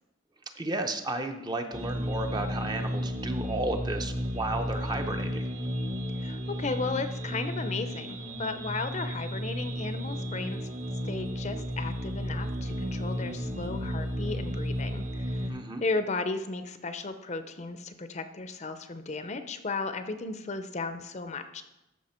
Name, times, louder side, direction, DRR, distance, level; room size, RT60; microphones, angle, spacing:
voice 1, 0.6-5.4 15.5-15.8, right 2 dB, 20° right, 6 dB, 0.6 m, -33 dB
sound 1, 1.7-15.5, equal, 35° right, 1.2 m, -33 dB
voice 2, 6.2-10.7 11.0-21.6, left 3 dB, 35° left, 9 dB, 0.6 m, -35 dB
13.5 x 5.9 x 4.4 m, 0.93 s
head